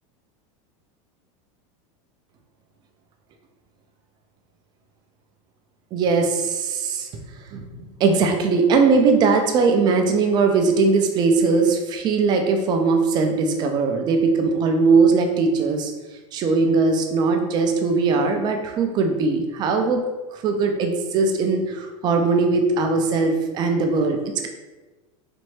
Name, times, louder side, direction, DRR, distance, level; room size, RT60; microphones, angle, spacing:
voice 1, 5.9-7.1 7.5-15.9 16.3-20.0 20.3-24.5, right 4 dB, 25° right, 4 dB, 0.4 m, -20 dB
4.2 x 2.6 x 3.2 m, 1.2 s
supercardioid pair, 160°, 17 cm